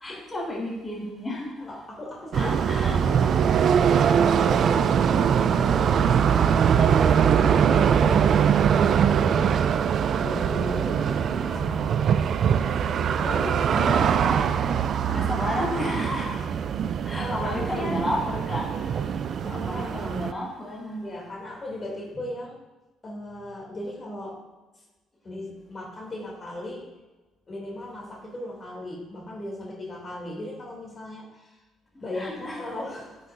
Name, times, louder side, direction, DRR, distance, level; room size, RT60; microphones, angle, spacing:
voice 1, 0.0-1.7 2.3-3.0 13.7-14.4 15.1-16.5 17.0-21.3 32.1-32.8, left 1 dB, 15° left, -4 dB, 2.4 m, -32 dB
voice 2, 1.6-3.5 3.9-9.6 9.9-12.3 12.6-12.8 13.2-14.6 15.1-15.2 17.2-18.0 19.4-20.2 21.0-22.6 23.0-24.4 25.2-26.9 27.5-31.6 32.0-33.2, left 1 dB, 35° left, -3 dB, 2.7 m, -37 dB
sound 1, 2.3-20.3, right 8 dB, 55° right, 0.4 m, -22 dB
10.0 x 6.4 x 2.6 m, 1.1 s
supercardioid pair, 80°, 0 cm